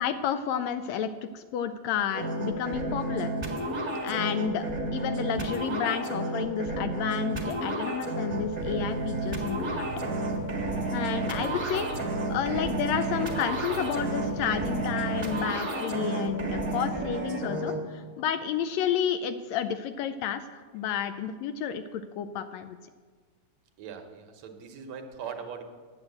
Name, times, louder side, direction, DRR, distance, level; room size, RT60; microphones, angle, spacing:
voice 1, 0.0-3.4 4.0-4.6 4.9-9.9 10.9-22.8, left 8 dB, 80° left, 10 dB, 1.6 m, -31 dB
sound 1, 2.1-17.7, right 2 dB, 20° right, 0.8 m, -31 dB
sound 2, 8.3-15.5, right 6 dB, 90° right, 2.0 m, -41 dB
voice 2, 23.8-25.6, right 7 dB, 70° right, 5 dB, 2.1 m, -40 dB
9.7 x 7.8 x 7.8 m, 1.5 s
omnidirectional pair, 3.3 m